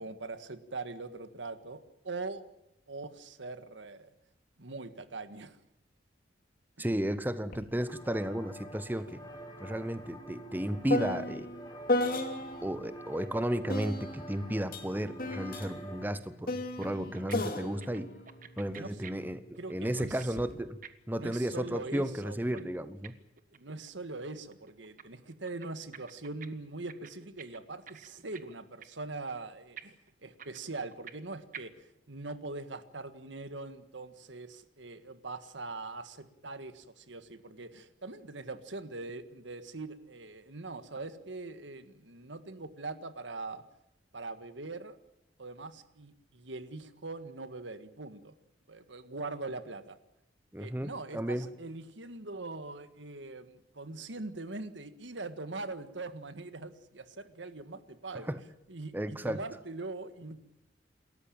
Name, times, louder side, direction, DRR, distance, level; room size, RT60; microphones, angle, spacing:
voice 1, 0.0-2.4 2.9-4.1 4.6-5.6 6.8-6.9 18.7-19.0 19.6-20.4 21.1-22.6 23.5-30.0 30.2-43.6 44.1-45.0 45.4-48.4 48.7-50.0 50.6-58.3 58.7-60.4, right 3 dB, 85° right, 11 dB, 1.7 m, -42 dB
voice 2, 6.8-9.2 9.6-11.5 12.6-18.1 18.6-20.8 21.1-23.1 50.5-51.5 58.1-58.4 58.9-59.4, equal, 10° right, 12 dB, 0.9 m, -33 dB
sound 1, 7.5-7.7 8.0-12.8 13.7-19.2 20.1-20.5, left 1 dB, 50° left, 3.0 m, -35 dB
sound 2, 7.9-16.1, right 1 dB, 20° left, 3.2 m, -47 dB
sound 3, 16.8-17.4 17.6-20.2 20.5-23.9 24.2-25.0 25.3-26.5 26.7-28.6 28.8-29.0 29.3-29.4 29.8-31.3 31.5-31.6, right 8 dB, 45° right, 1.5 m, -49 dB
28.5 x 14.0 x 8.8 m, 0.85 s
head